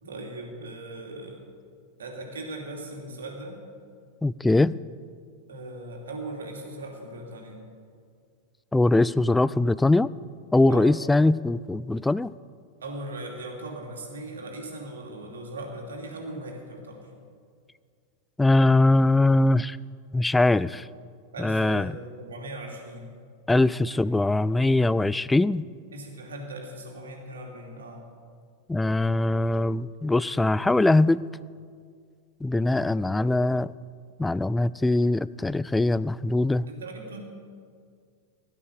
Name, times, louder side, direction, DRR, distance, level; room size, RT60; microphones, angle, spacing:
voice 1, 0.0-1.4 2.0-3.6 5.5-7.6 10.7-11.0 12.8-17.1 21.3-23.1 23.9-24.0 25.9-28.1 36.7-37.3, right 1 dB, 65° right, 1 dB, 2.6 m, -39 dB
voice 2, 4.2-4.8 8.7-10.1 10.5-12.3 18.4-19.8 20.1-20.9 21.4-22.0 23.5-25.6 28.7-31.2 32.4-33.7 34.2-36.7, left 2 dB, 5° left, 18 dB, 0.3 m, -22 dB
16.5 x 11.5 x 6.7 m, 2.1 s
figure-of-eight pair, 90°, 0 cm